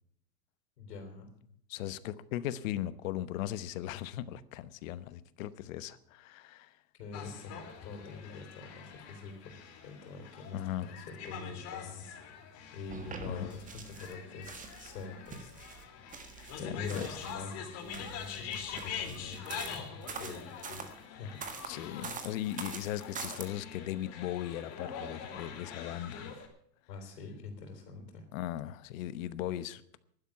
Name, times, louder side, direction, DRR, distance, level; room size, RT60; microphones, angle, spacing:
voice 1, 0.8-1.3 6.9-12.1 12.4-12.5 12.7-15.5 16.6-21.4 26.9-28.2, left 4 dB, 75° left, 4.3 m, -45 dB
voice 2, 1.7-6.7 10.5-10.9 13.2-13.5 16.6-17.3 21.6-26.4 28.3-30.0, left 13 dB, 55° left, 1.1 m, -38 dB
sound 1, 7.1-26.5, left 7 dB, 30° left, 2.8 m, -45 dB
sound 2, 12.9-14.1 14.4-17.4 17.8-20.9 21.4-23.5, right 5 dB, 15° right, 1.6 m, -44 dB
12.0 x 10.5 x 8.6 m
supercardioid pair, 145°, 48 cm